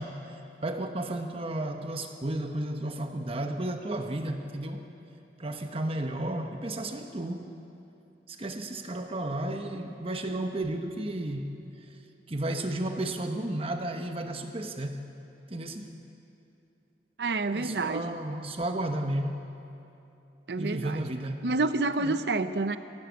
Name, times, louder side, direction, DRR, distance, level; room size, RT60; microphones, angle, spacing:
voice 1, 0.0-4.9 5.4-7.5 8.3-11.6 12.3-15.1 15.5-15.9 17.5-19.5 20.6-21.5 22.0-22.2, right 1 dB, 35° right, 5 dB, 1.1 m, -33 dB
voice 2, 17.2-18.2 20.5-21.0 21.4-22.8, right 3 dB, 70° right, 11 dB, 0.7 m, -28 dB
23.0 x 17.0 x 8.4 m, 2.9 s
head